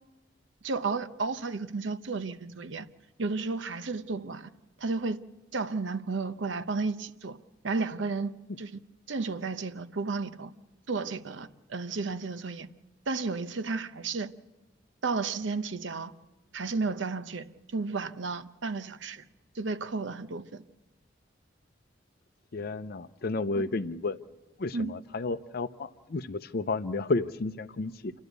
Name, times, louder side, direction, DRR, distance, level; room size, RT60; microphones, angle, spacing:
voice 1, 0.6-2.9 3.2-4.5 4.8-5.2 5.5-7.4 7.6-8.8 9.1-10.5 10.9-12.7 13.1-14.3 15.0-16.1 16.5-17.5 17.7-19.2 19.5-20.6 24.7-24.9, right 4 dB, 75° right, 0.9 m, -32 dB
voice 2, 22.5-24.2 24.6-28.1, left 3 dB, 55° left, 0.6 m, -32 dB
29.0 x 12.0 x 8.1 m
head